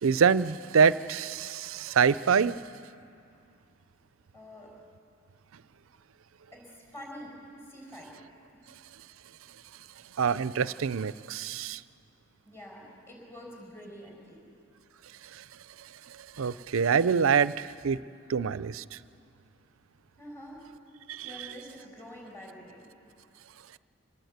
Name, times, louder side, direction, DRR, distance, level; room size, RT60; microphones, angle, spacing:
voice 1, 0.0-2.6 10.2-11.8 15.3-15.4 16.4-18.0 18.3-18.8 21.1-21.3, right 6 dB, 85° right, 17 dB, 0.5 m, -25 dB
voice 2, 4.3-4.7 6.5-7.3 7.6-8.1 12.5-14.4 20.2-20.6 21.2-22.9, equal, 15° left, -2 dB, 6.0 m, -46 dB
26.0 x 19.5 x 8.0 m, 2.5 s
head